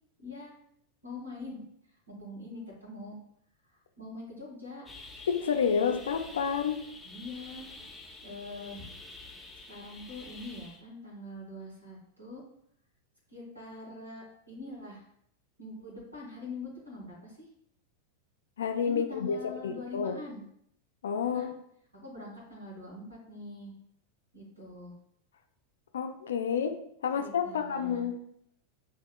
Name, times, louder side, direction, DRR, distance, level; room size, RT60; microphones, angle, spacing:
voice 1, 0.2-0.5 1.0-1.7 2.1-3.2 3.7-4.8 7.0-7.7 8.2-8.9 9.7-12.4 13.3-15.1 15.6-17.5 18.8-20.4 21.2-21.5 21.9-23.7 24.3-24.9 27.1-28.1, left 2 dB, 85° right, -5 dB, 1.7 m, -43 dB
sound 1, 4.9-10.8, left 3 dB, 10° left, 0.7 m, -48 dB
voice 2, 5.3-6.8 18.6-20.2 21.0-21.5 25.9-26.8 27.0-28.2, left 7 dB, 65° left, 6 dB, 0.5 m, -29 dB
8.1 x 2.7 x 2.2 m, 0.72 s
figure-of-eight pair, 90°, 0 cm